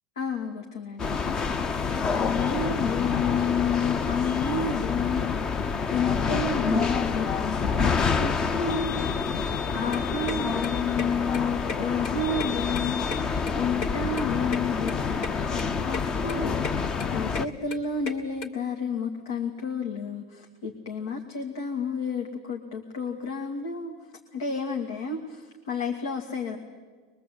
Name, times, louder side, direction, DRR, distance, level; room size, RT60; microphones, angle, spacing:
voice 1, 0.2-1.4 1.7-23.9 24.3-26.6, left 5 dB, 90° left, 2 dB, 2.4 m, -31 dB
sound 1, 1.0-17.5, left 5 dB, 25° left, 0.8 m, -27 dB
sound 2, 9.9-18.5, left 4 dB, 45° left, 2.8 m, -38 dB
23.0 x 22.5 x 8.5 m, 1.4 s
supercardioid pair, 125°, 2 cm